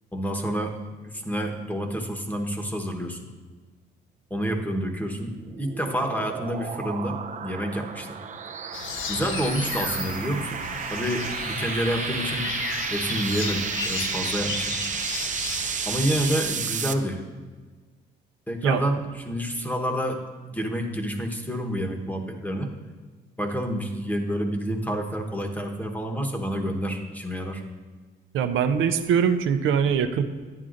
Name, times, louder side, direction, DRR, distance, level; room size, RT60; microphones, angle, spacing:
voice 1, 0.1-0.8 1.0-3.2 4.3-8.2 9.1-10.6 10.9-12.5 12.9-14.7 15.9-17.2 18.5-20.2 20.5-22.7 23.4-27.6, equal, 10° left, 3 dB, 1.1 m, -28 dB
sound 1, 5.2-16.9, right 6 dB, 40° right, 0.5 m, -32 dB
sound 2, 8.7-16.5, left 7 dB, 80° left, 0.6 m, -34 dB
voice 2, 28.3-30.2, right 7 dB, 80° right, 8 dB, 0.6 m, -22 dB
10.5 x 9.6 x 2.5 m, 1.4 s
cardioid pair, 90°, 20 cm